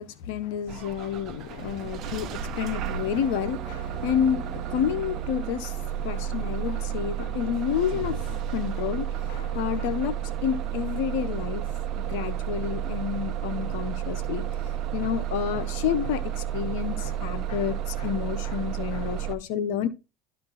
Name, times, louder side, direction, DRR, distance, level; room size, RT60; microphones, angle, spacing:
voice 1, 0.0-11.7 12.0-14.4 14.9-19.9, left 9 dB, 70° left, 0.9 m, -30 dB
Bus / Engine starting, 0.7-19.3, right 10 dB, 50° right, 0.8 m, -32 dB
11.5 x 4.5 x 4.1 m
hypercardioid pair, 85°, 0 cm